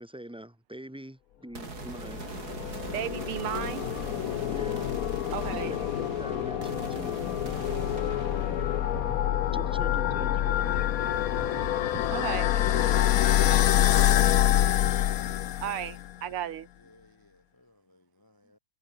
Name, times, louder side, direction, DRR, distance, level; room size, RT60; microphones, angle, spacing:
voice 1, 0.0-2.3 4.5-7.2 9.5-11.0, right 1 dB, ahead, 2.8 m, -44 dB
sound 1, 1.5-12.9, right 4 dB, 45° right, 3.7 m, -42 dB
sound 2, 1.9-16.1, left 12 dB, 80° left, 0.7 m, -26 dB
voice 2, 2.9-3.9 5.3-5.8 7.7-8.2 8.8-9.5 10.1-10.3 10.7-10.8 11.4-13.1 15.6-16.7, right 11 dB, 90° right, 2.1 m, -36 dB
voice 3, 16.9-18.6, left 1 dB, 20° left, 0.5 m, -57 dB
omnidirectional pair, 2.4 m